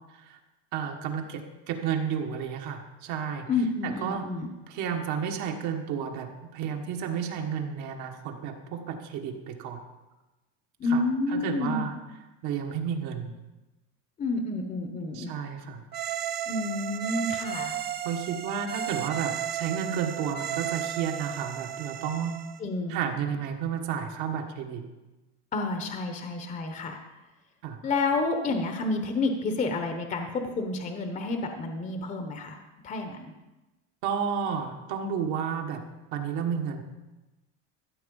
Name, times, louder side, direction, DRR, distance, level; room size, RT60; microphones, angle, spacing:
voice 1, 0.7-3.5 3.8-4.3 4.7-9.8 10.9-11.0 11.3-11.9 12.4-13.3 15.1-15.8 18.0-22.3 22.9-24.8 27.6-27.8 34.0-35.8 36.1-36.8, right 7 dB, 60° right, 3 dB, 1.6 m, -32 dB
voice 2, 3.5-4.5 10.8-11.9 14.2-15.3 16.5-17.8 22.6-23.0 25.5-27.0 27.8-32.6 32.8-33.3, left 3 dB, 20° left, 5 dB, 0.9 m, -29 dB
sound 1, 15.9-22.6, right 10 dB, 30° right, 0.8 m, -34 dB
14.0 x 7.9 x 5.4 m, 1.1 s
cardioid pair, 150°, 34 cm